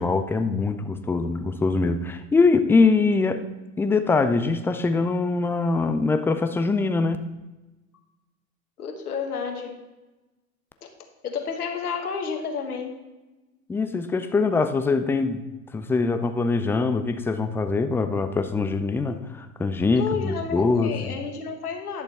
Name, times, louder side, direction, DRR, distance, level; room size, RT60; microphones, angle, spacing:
voice 1, 0.0-3.4 3.8-7.2 13.7-15.4 15.7-21.1, left 4 dB, 5° left, 9 dB, 0.3 m, -23 dB
voice 2, 8.8-9.8 10.8-10.9 11.2-12.9 19.9-22.0, left 5 dB, 90° left, 4 dB, 1.5 m, -31 dB
10.5 x 6.7 x 4.2 m, 1.1 s
hypercardioid pair, 90°, 44 cm